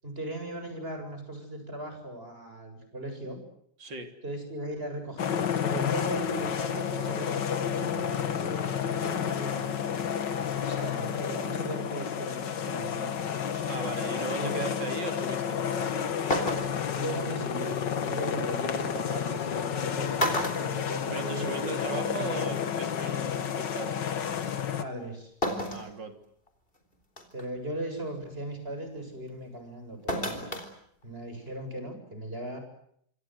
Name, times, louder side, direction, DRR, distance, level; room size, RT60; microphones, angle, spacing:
voice 1, 0.0-3.4 4.2-9.8 10.5-13.3 14.4-14.7 16.9-22.5 24.8-25.3 27.3-30.4 31.0-32.6, right 1 dB, 30° right, 6 dB, 8.1 m, -38 dB
voice 2, 3.8-4.1 10.7-10.9 13.7-16.1 21.1-24.0 25.7-26.2, right 3 dB, 85° right, 7 dB, 3.9 m, -38 dB
sound 1, 5.2-24.8, left 8 dB, 80° left, 2.1 m, -31 dB
sound 2, 16.3-17.0 18.6-18.7 19.6-19.8 20.2-21.6 21.9-22.0 23.2-23.3 25.4-25.9 26.5-26.6 27.2-27.5 30.1-30.7 31.0-31.1, equal, 30° left, 4.3 m, -31 dB
26.5 x 26.0 x 8.0 m, 0.69 s
omnidirectional pair, 1.9 m